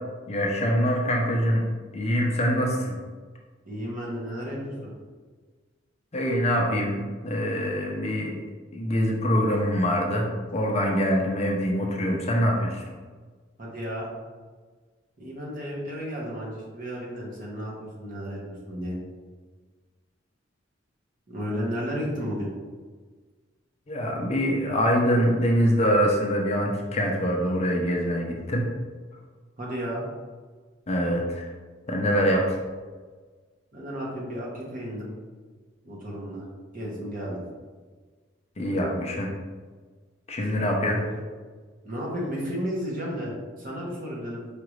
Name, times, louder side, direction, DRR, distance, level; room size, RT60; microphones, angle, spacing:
voice 1, 0.3-1.7 1.9-2.9 6.1-8.4 8.7-12.8 23.9-28.7 30.9-31.5 31.9-32.6 38.6-39.3 40.3-41.0, equal, 35° left, 0 dB, 0.5 m, -24 dB
voice 2, 3.6-4.9 13.6-14.1 15.2-19.0 21.3-22.5 29.6-30.0 33.7-35.1 35.8-36.4 36.7-37.4 40.9-41.2 41.8-44.5, equal, 45° right, -4 dB, 1.1 m, -33 dB
4.8 x 2.5 x 3.1 m, 1.4 s
head